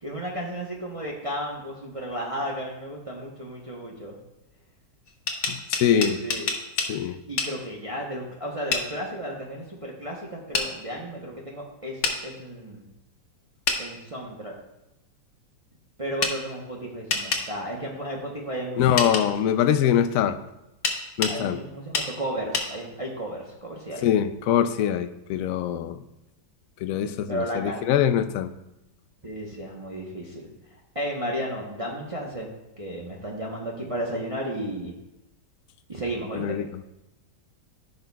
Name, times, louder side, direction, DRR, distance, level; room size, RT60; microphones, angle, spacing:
voice 1, 0.0-4.2 5.9-6.5 7.3-12.8 13.8-14.5 16.0-19.2 21.2-24.0 27.3-27.8 29.2-30.5 30.9-34.9 35.9-36.6, right 1 dB, 25° right, -3 dB, 0.8 m, -33 dB
sound 1, 5.1-6.9 7.4-7.5 8.7-8.9 10.5-10.7 12.0-12.2 13.7-13.8 16.2-16.4 17.1-17.5 19.0-19.3 20.8-21.4 21.9-22.1 22.5-22.7, left 4 dB, 50° left, 1.1 m, -26 dB
voice 2, 5.5-6.2 6.9-7.2 18.8-20.4 21.2-21.6 24.0-26.0 26.8-28.5 36.3-36.8, left 9 dB, 70° left, 10 dB, 0.8 m, -23 dB
14.5 x 5.6 x 2.3 m, 0.93 s
omnidirectional pair, 1.9 m